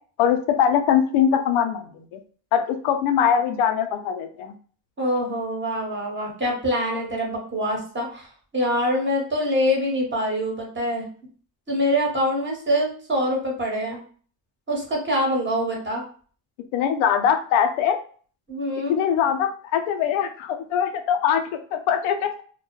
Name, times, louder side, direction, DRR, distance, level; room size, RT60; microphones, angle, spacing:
voice 1, 0.2-2.2 2.5-4.5 16.7-18.0 18.9-22.4, left 8 dB, 80° left, 6 dB, 0.6 m, -22 dB
voice 2, 5.0-11.1 11.7-14.0 14.7-16.0 18.5-19.0, equal, 25° right, -1 dB, 1.0 m, -25 dB
2.2 x 2.1 x 3.0 m, 0.43 s
cardioid pair, 90°, 47 cm